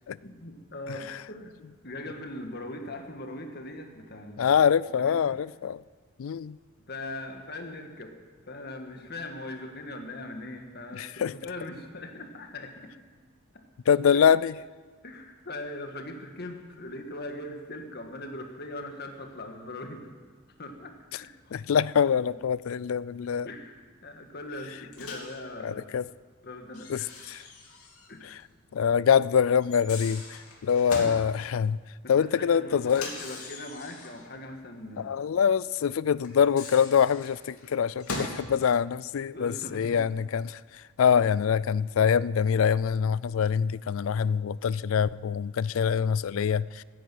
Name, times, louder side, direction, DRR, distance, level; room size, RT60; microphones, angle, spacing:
voice 1, 0.2-1.5 1.8-4.5 4.9-5.4 6.9-8.2 8.5-12.9 13.5-13.6 14.1-14.3 15.0-20.2 20.6-21.6 22.0-22.1 23.4-26.0 26.4-27.1 28.1-28.4 32.0-35.2 39.3-40.0, left 1 dB, 45° left, 4 dB, 1.7 m, -40 dB
voice 2, 4.4-5.8 6.2-6.6 10.9-11.3 13.9-14.5 21.1-21.2 21.5-23.5 25.6-26.0 26.9-27.4 28.2-28.4 28.7-31.8 32.1-33.1 35.0-46.8, left 7 dB, 65° left, 20 dB, 0.3 m, -25 dB
Microwave oven, 24.9-25.4 26.7-28.1 28.4-28.5 29.6-31.2 32.8-34.3 36.2-38.4, left 3 dB, 80° left, 2.9 m, -40 dB
15.5 x 10.0 x 7.7 m, 1.5 s
head